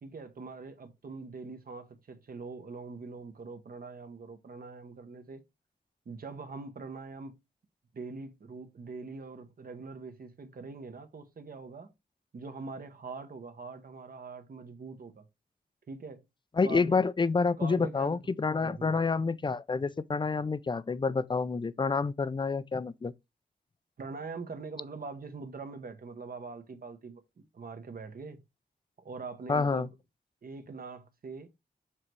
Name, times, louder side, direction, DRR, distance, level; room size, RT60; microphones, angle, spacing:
voice 1, 0.0-5.4 6.0-7.4 7.9-11.9 12.3-15.2 15.9-16.2 16.6-17.1 17.6-18.2 18.6-18.9 24.0-27.2 27.5-28.4 29.0-29.9 30.4-31.5, right 4 dB, 60° right, 1.2 m, -43 dB
voice 2, 16.6-23.1 29.5-29.9, left 4 dB, 30° left, 0.5 m, -28 dB
7.4 x 3.1 x 4.6 m
wide cardioid pair, 95°, 17 cm